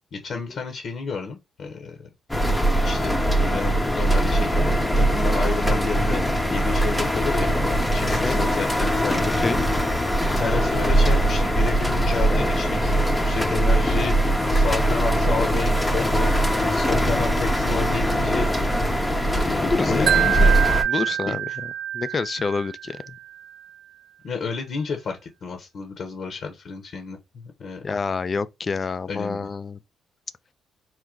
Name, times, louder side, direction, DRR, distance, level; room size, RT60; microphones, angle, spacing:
voice 1, 0.1-2.5 2.8-3.2 3.4-4.7 4.9-7.5 7.9-9.7 10.2-20.6 20.9-21.4 24.2-27.8 29.1-29.5, left 4 dB, 60° left, 1.0 m, -31 dB
sound 1, 2.3-20.8, right 1 dB, 10° left, 0.8 m, -21 dB
voice 2, 8.1-8.4 9.4-9.6 19.6-20.2 20.9-21.4 21.9-23.2 27.8-29.8, left 4 dB, 35° left, 0.4 m, -27 dB
Wind chime, 20.1-23.2, right 11 dB, 65° right, 0.5 m, -25 dB
4.6 x 2.1 x 3.7 m
cardioid pair, 90°, 0 cm